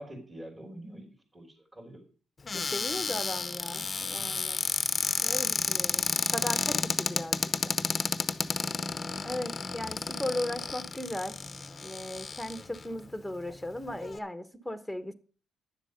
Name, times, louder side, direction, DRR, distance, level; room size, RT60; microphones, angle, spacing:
voice 1, 0.0-2.0 12.5-12.8, right 1 dB, 20° right, 3.7 m, -46 dB
Cupboard open or close, 2.5-12.8 13.5-13.6 13.8-14.2, left 4 dB, 30° left, 0.8 m, -31 dB
voice 2, 2.5-4.7 5.2-6.0 6.3-7.7 9.2-11.4 11.8-15.1, left 1 dB, ahead, 1.3 m, -37 dB
10.5 x 7.4 x 6.7 m
cardioid pair, 90°, 0 cm